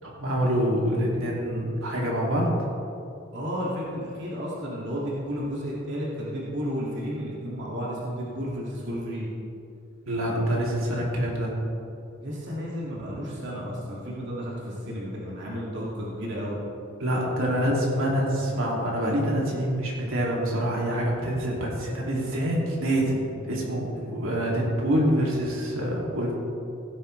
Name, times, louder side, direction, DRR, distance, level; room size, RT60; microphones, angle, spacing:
voice 1, 0.0-2.5 10.1-11.5 17.0-26.3, equal, 80° right, -3 dB, 2.6 m, -26 dB
voice 2, 3.3-9.3 12.2-16.6 23.9-24.1, equal, 60° right, -6 dB, 2.2 m, -32 dB
16.5 x 10.0 x 3.3 m, 2.8 s
head